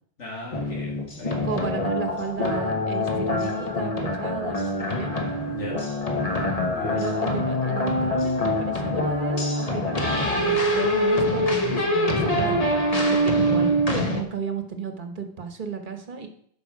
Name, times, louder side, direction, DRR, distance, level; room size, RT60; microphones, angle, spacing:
voice 1, 0.2-1.5 5.5-5.8 6.6-7.0, left 2 dB, 90° left, -5 dB, 2.2 m, -37 dB
sound 1, 0.5-14.2, left 1 dB, 35° left, 1.2 m, -24 dB
voice 2, 1.4-5.2 6.9-12.6 13.1-13.8 14.1-16.3, right 5 dB, 45° right, 7 dB, 1.2 m, -34 dB
12.0 x 5.2 x 4.8 m, 0.63 s
omnidirectional pair, 1.2 m